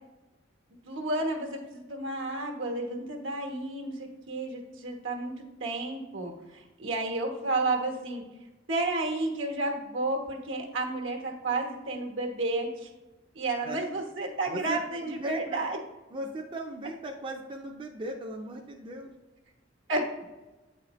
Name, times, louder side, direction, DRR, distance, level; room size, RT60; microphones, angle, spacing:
voice 1, 0.8-5.3 5.6-8.2 8.7-12.9 13.3-15.8 19.9-20.0, right 2 dB, 75° right, 1 dB, 1.1 m, -31 dB
voice 2, 14.5-15.6 16.1-19.1, right 1 dB, 25° right, 1 dB, 0.5 m, -37 dB
8.1 x 4.2 x 3.0 m, 1.1 s
head